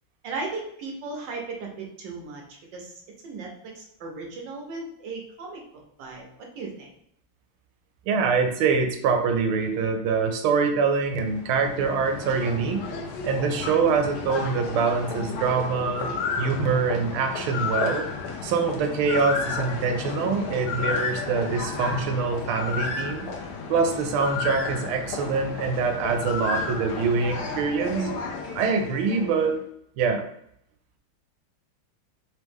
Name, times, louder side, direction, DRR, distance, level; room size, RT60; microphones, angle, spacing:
voice 1, 0.2-2.4 2.7-5.6 6.0-6.2 6.5-6.9, right 3 dB, 65° right, 0 dB, 1.4 m, -36 dB
voice 2, 8.1-12.9 13.2-18.1 18.4-23.3 23.7-28.1 28.5-29.6 30.0-30.3, right 5 dB, 85° right, 5 dB, 1.5 m, -24 dB
sound 1, 11.1-29.5, left 4 dB, 70° left, 1.0 m, -32 dB
3.9 x 3.1 x 3.4 m, 0.72 s
omnidirectional pair, 2.3 m